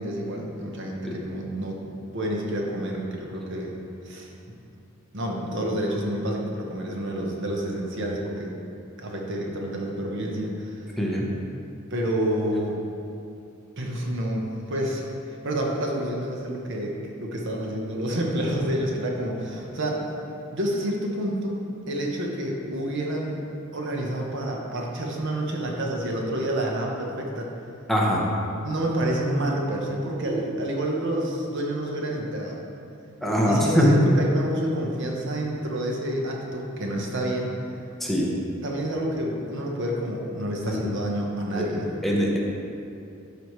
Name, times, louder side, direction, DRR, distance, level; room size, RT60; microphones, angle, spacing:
voice 1, 0.0-1.8 2.1-3.7 4.0-4.6 5.1-8.5 9.0-10.8 11.9-12.8 13.8-20.1 20.5-23.4 23.7-27.5 28.6-32.6 33.4-37.5 38.6-41.9, right 1 dB, 60° right, -1 dB, 1.0 m, -29 dB
voice 2, 11.0-11.3 27.9-28.2 33.2-33.9 38.0-38.3 40.7-40.8 41.6-41.7 42.0-42.4, equal, ahead, -4 dB, 0.8 m, -22 dB
12.0 x 5.0 x 3.1 m, 2.6 s
head